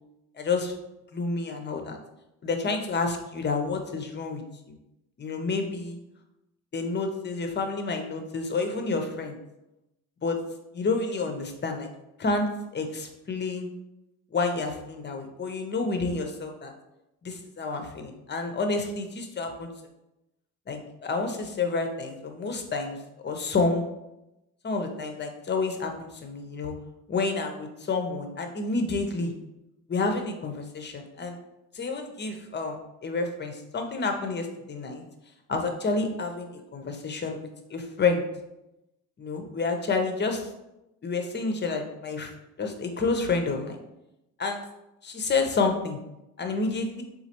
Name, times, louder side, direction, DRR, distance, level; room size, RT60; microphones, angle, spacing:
voice 1, 0.4-0.7 1.1-2.0 2.4-4.4 5.2-6.0 6.7-9.4 10.2-10.4 10.7-11.9 12.2-12.5 12.7-13.7 14.3-16.7 17.2-19.7 20.7-23.0 23.2-23.8 24.6-26.7 27.1-29.3 29.9-31.3 31.7-32.8 33.0-35.0 35.5-37.4 37.7-38.2 39.2-40.4 41.0-42.3 42.6-43.8 44.4-44.6 45.0-46.0 46.4-47.0, left 3 dB, 30° left, 5 dB, 0.7 m, -29 dB
4.0 x 2.4 x 2.9 m, 0.91 s
supercardioid pair, 70°, 36 cm